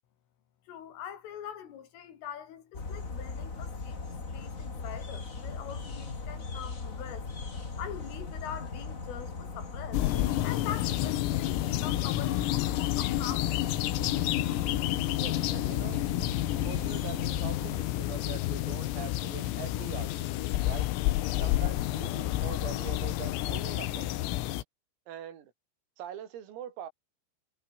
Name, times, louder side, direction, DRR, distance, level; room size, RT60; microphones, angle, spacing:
voice 1, 0.7-4.0 4.3-7.3 7.8-10.1 10.4-13.6, left 9 dB, 70° left, 5.3 m, -43 dB
sound 1, 2.7-17.8, left 4 dB, 30° left, 1.5 m, -39 dB
sound 2, 9.9-24.6, left 16 dB, 85° left, 4.1 m, -30 dB
voice 2, 15.1-16.0 16.6-20.9 21.4-24.2 25.1-25.5 26.0-26.9, right 10 dB, 80° right, 5.7 m, -43 dB
omnidirectional pair, 6.0 m